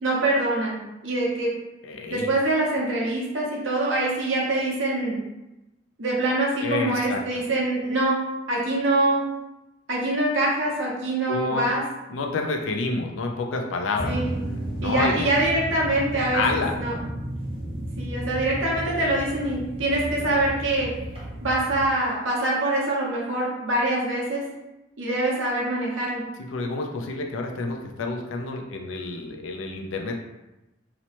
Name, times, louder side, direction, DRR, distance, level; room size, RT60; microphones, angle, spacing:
voice 1, 0.0-1.5 2.1-5.2 6.0-8.2 8.5-9.2 9.9-11.8 14.1-14.5 14.8-16.9 18.0-20.9 21.4-24.4 25.0-26.2, right 2 dB, 75° right, -4 dB, 0.8 m, -24 dB
voice 2, 1.8-2.3 6.6-7.2 11.3-11.7 12.1-14.1 14.8-15.3 16.3-16.7 26.4-30.2, left 3 dB, 80° left, 2 dB, 0.4 m, -28 dB
sound 1, 13.9-21.9, right 1 dB, 30° right, 0.6 m, -33 dB
2.9 x 2.0 x 2.9 m, 0.98 s
head